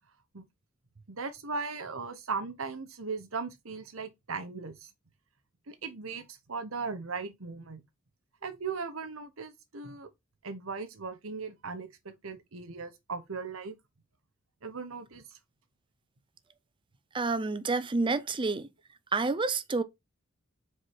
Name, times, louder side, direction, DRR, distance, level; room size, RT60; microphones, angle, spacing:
voice 1, 1.1-4.9 5.7-7.8 8.4-10.1 10.4-13.7 14.6-15.4, right 4 dB, 85° right, 1.2 m, -38 dB
voice 2, 17.1-18.7 19.1-19.8, right 3 dB, 25° right, 0.5 m, -29 dB
4.9 x 4.5 x 4.7 m
head